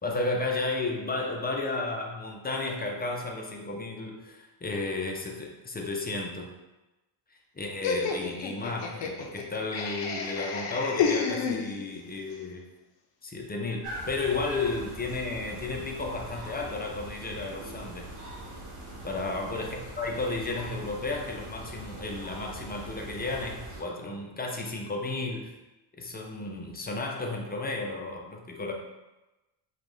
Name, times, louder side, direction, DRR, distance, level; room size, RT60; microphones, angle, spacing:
voice 1, 0.0-6.5 7.6-12.6 13.2-18.1 19.0-25.5 26.0-28.7, left 3 dB, 20° left, 1 dB, 0.6 m, -33 dB
Laughter, 7.8-12.1, left 6 dB, 60° left, 0.7 m, -31 dB
sound 1, 13.8-23.8, right 1 dB, 80° right, 1.1 m, -42 dB
5.1 x 2.5 x 3.1 m, 1.1 s
cardioid pair, 100°, 50 cm